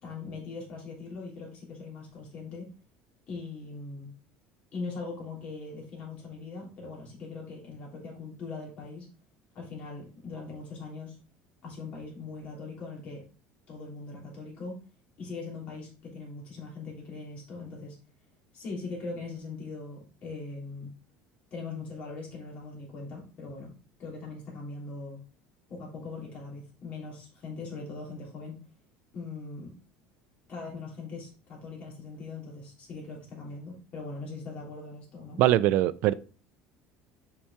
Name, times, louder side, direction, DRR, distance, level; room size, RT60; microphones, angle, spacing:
voice 1, 0.0-2.7 3.3-4.1 4.7-9.1 9.5-11.2 11.6-13.2 13.7-14.8 15.2-17.9 18.5-20.9 21.5-23.7 24.0-25.2 25.7-28.6 29.1-29.8 30.5-35.4, left 3 dB, 35° left, 3.2 m, -40 dB
voice 2, 35.4-36.1, right 14 dB, 50° right, 0.4 m, -22 dB
5.7 x 5.5 x 3.5 m
cardioid pair, 165°, 4 cm